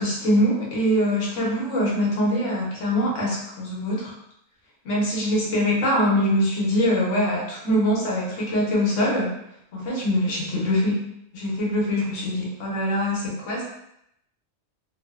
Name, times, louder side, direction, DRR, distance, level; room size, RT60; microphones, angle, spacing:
voice 1, 0.0-4.1 4.8-9.3 9.7-11.0 11.3-13.7, equal, 75° left, -3 dB, 1.1 m, -23 dB
2.8 x 2.0 x 2.3 m, 0.78 s
omnidirectional pair, 1.3 m